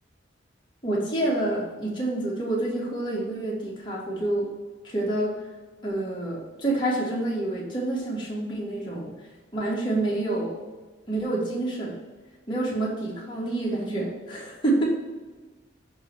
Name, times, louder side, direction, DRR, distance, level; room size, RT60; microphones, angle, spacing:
voice 1, 0.8-4.5 4.8-5.3 5.8-9.1 9.5-10.5 11.1-12.0 12.5-14.9, right 2 dB, 25° left, -5 dB, 1.7 m, -28 dB
7.1 x 3.1 x 6.0 m, 1.3 s
head